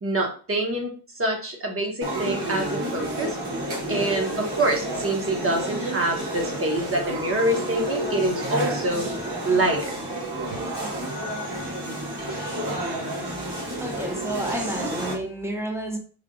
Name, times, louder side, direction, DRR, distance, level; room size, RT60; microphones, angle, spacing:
voice 1, 0.0-0.9 1.2-3.4 3.9-9.0 9.4-10.0, right 1 dB, 35° right, 1.2 m, -25 dB
sound 1, 2.0-15.1, right 1 dB, 90° right, 1.6 m, -30 dB
voice 2, 13.5-16.0, right 1 dB, 5° right, 0.9 m, -31 dB
3.4 x 2.4 x 3.8 m
cardioid pair, 90°, 40 cm